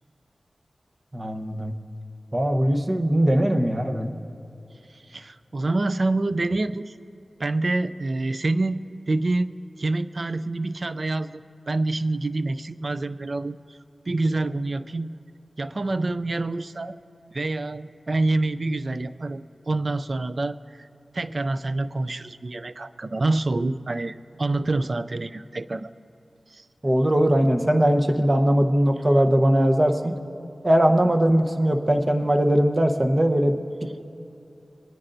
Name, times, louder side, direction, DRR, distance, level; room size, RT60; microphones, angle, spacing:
voice 1, 1.1-1.8 2.3-4.1 26.8-30.2 30.6-34.0, right 1 dB, 35° right, 5 dB, 0.9 m, -20 dB
voice 2, 5.1-6.9 7.4-13.8 14.1-15.1 15.6-17.0 17.3-20.9 21.1-25.9 26.5-26.6, right 2 dB, 55° right, 13 dB, 0.4 m, -27 dB
24.5 x 9.7 x 2.6 m, 2.7 s
cardioid pair, 40°, 0 cm